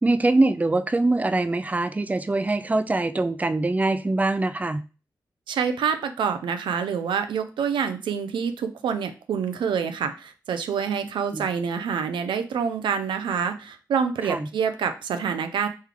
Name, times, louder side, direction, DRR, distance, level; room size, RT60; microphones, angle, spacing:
voice 1, 0.0-4.8 11.3-11.4 14.2-14.5, right 2 dB, 20° right, 11 dB, 0.4 m, -23 dB
voice 2, 5.5-15.7, right 7 dB, 85° right, 8 dB, 0.5 m, -27 dB
3.2 x 3.2 x 3.7 m, 0.32 s
cardioid pair, 45°, 8 cm